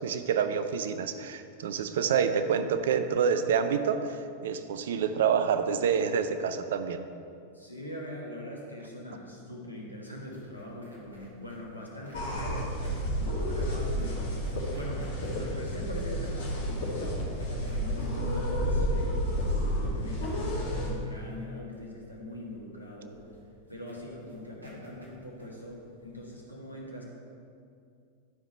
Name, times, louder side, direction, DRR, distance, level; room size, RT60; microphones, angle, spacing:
voice 1, 0.0-7.0, right 7 dB, 60° right, 10 dB, 0.5 m, -27 dB
voice 2, 7.5-14.3 14.7-23.3 23.7-27.0, left 1 dB, 85° left, -3 dB, 1.6 m, -42 dB
sound 1, 10.2-26.3, equal, 80° right, 1.9 m, -51 dB
sound 2, 12.1-20.9, equal, 55° left, 2.2 m, -31 dB
11.5 x 4.9 x 4.3 m, 2.4 s
figure-of-eight pair, 90°, 0 cm